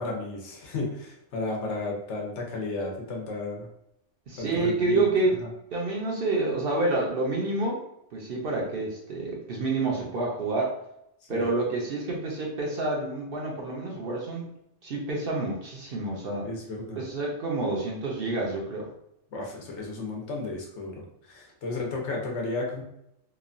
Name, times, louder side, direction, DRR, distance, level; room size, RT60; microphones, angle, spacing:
voice 1, 0.0-3.7 4.4-5.1 11.3-11.5 16.4-17.0 19.3-20.9 21.2-22.8, left 3 dB, 70° left, -1 dB, 1.0 m, -33 dB
voice 2, 4.3-5.4 5.7-7.8 8.1-10.8 11.3-14.5 14.8-16.5 16.9-18.9, right 2 dB, 60° right, -2 dB, 0.7 m, -28 dB
3.0 x 2.1 x 2.5 m, 0.78 s
omnidirectional pair, 1.2 m